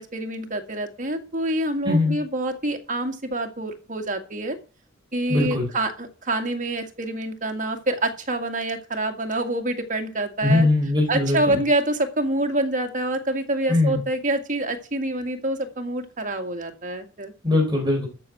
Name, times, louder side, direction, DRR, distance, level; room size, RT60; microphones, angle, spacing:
voice 1, 0.0-4.6 5.1-10.7 11.1-17.3, right 1 dB, 40° right, 4 dB, 2.0 m, -26 dB
voice 2, 1.8-2.2 5.3-5.7 10.4-11.6 13.7-14.0 17.4-18.1, left 2 dB, 20° right, 0 dB, 3.8 m, -21 dB
13.5 x 6.1 x 7.7 m, 0.34 s
head